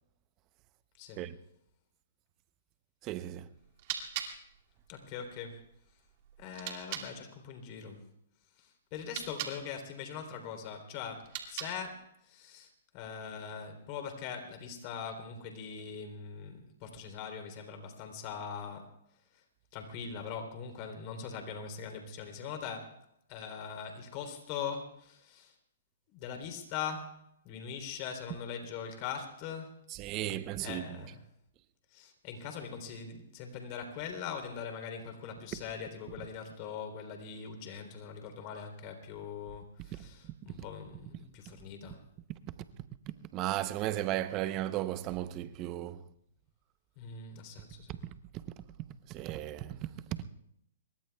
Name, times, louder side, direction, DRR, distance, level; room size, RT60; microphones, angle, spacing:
voice 1, 3.0-3.5 29.9-31.0 35.5-35.6 39.9-40.0 40.5-40.6 42.3-42.4 43.1-46.0 47.9-48.6 49.1-50.2, right 14 dB, 30° right, 0.8 m, -36 dB
sound 1, 3.6-7.1 8.9-9.6 11.1-12.0, right 9 dB, 45° right, 2.5 m, -42 dB
voice 2, 4.9-5.6 6.4-8.1 8.6-18.9 19.7-23.0 23.3-25.5 26.1-29.7 30.6-31.2 31.9-42.0 47.0-48.0, left 6 dB, 40° left, 3.4 m, -42 dB
26.0 x 22.5 x 2.3 m
hypercardioid pair, 140°, 0 cm